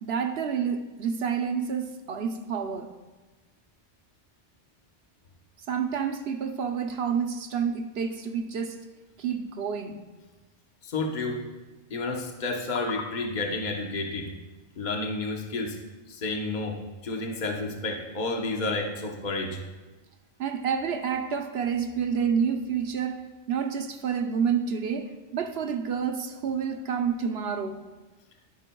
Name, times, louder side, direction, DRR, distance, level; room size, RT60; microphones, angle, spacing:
voice 1, 0.0-2.9 5.7-8.8 9.2-10.0 20.4-27.8, right 7 dB, 65° right, 6 dB, 0.9 m, -29 dB
voice 2, 10.8-11.4 11.9-14.3 14.8-15.8 16.1-16.8 17.0-19.6, left 3 dB, 45° left, 2 dB, 1.1 m, -30 dB
12.0 x 9.7 x 2.3 m, 1.2 s
omnidirectional pair, 1.2 m